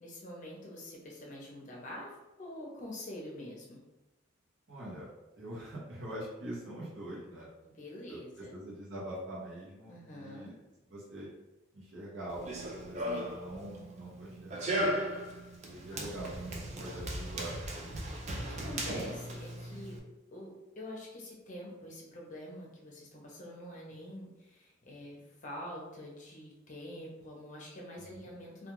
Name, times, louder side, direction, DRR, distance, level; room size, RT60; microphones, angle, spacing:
voice 1, 0.0-3.8 7.6-8.5 9.9-10.5 13.1-13.2 15.9-16.1 18.4-20.0 20.3-28.7, left 1 dB, 40° left, -2 dB, 0.6 m, -46 dB
voice 2, 4.7-7.5 8.1-10.5 10.9-11.3 11.7-12.5 12.8-15.1 15.7-17.9 28.0-28.3, right 1 dB, 65° right, -6 dB, 0.7 m, -44 dB
Run, 12.3-20.0, right 1 dB, 35° right, 0.3 m, -37 dB
2.3 x 2.2 x 3.0 m, 1.0 s
head